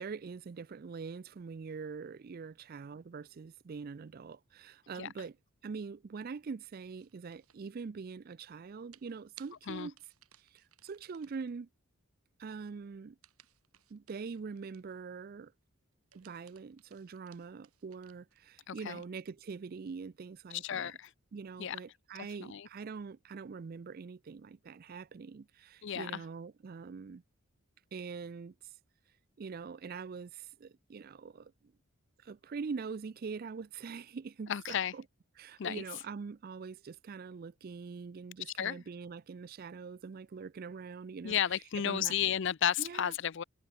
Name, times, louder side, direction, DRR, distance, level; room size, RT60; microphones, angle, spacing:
voice 1, 0.0-5.4 5.6-9.9 10.4-11.7 12.4-13.2 13.9-15.5 16.1-20.9 21.3-27.2 27.9-28.5 29.4-31.7 32.2-35.0 35.4-41.4 41.8-42.2 42.8-43.1, right 5 dB, 40° right, 0.4 m, -43 dB
sound 1, 7.0-7.7 8.9-11.5 13.2-15.0 15.9-18.5, right 12 dB, 85° right, 3.9 m, -62 dB
voice 2, 18.7-19.0 20.5-21.1 21.6-21.8 22.5-22.7 25.8-26.2 34.5-34.9 35.6-35.8 38.5-38.8 41.2-43.4, left 9 dB, 55° left, 0.5 m, -33 dB
head